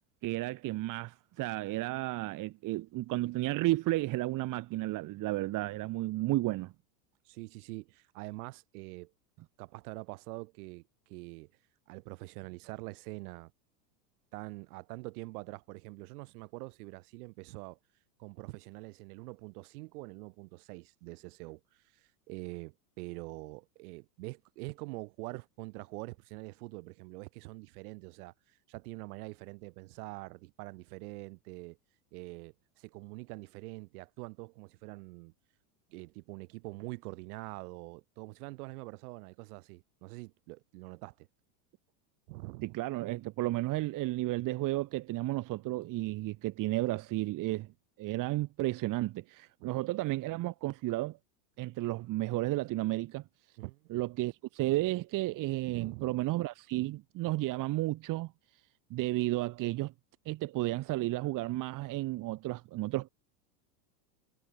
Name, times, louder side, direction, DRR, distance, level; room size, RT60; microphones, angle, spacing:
voice 1, 0.2-6.7 42.6-47.7 48.0-51.2 51.6-53.2 53.9-58.3 58.9-59.9 60.3-63.1, right 18 dB, 40° right, 2.7 m, -32 dB
voice 2, 7.3-9.1 9.6-11.5 11.9-13.5 14.3-17.8 18.2-31.8 32.1-35.3 35.9-41.3 42.3-42.8 49.6-49.8 53.6-54.0 55.6-56.2, right 24 dB, 65° right, 5.1 m, -45 dB
supercardioid pair, 140°, 48 cm